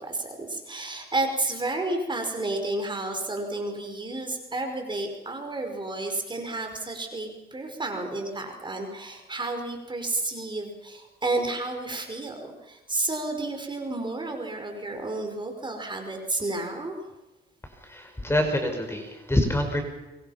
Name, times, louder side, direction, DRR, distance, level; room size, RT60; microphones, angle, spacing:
voice 1, 0.0-17.1, right 2 dB, 25° right, 4 dB, 5.4 m, -31 dB
voice 2, 17.6-19.8, left 1 dB, 10° left, 5 dB, 5.7 m, -26 dB
26.0 x 25.0 x 6.0 m, 1.1 s
cardioid pair, 90°, 20 cm